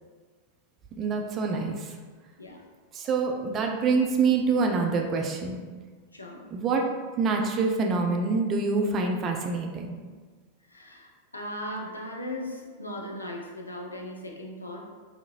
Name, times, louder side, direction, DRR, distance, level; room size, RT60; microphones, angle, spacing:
voice 1, 1.0-1.9 2.9-5.6 6.5-6.8 7.2-10.0, right 4 dB, 30° right, 1 dB, 0.3 m, -26 dB
voice 2, 6.1-6.5 10.7-14.9, left 1 dB, 80° left, 0 dB, 0.4 m, -38 dB
2.5 x 2.4 x 2.8 m, 1.5 s
figure-of-eight pair, 90°, 0 cm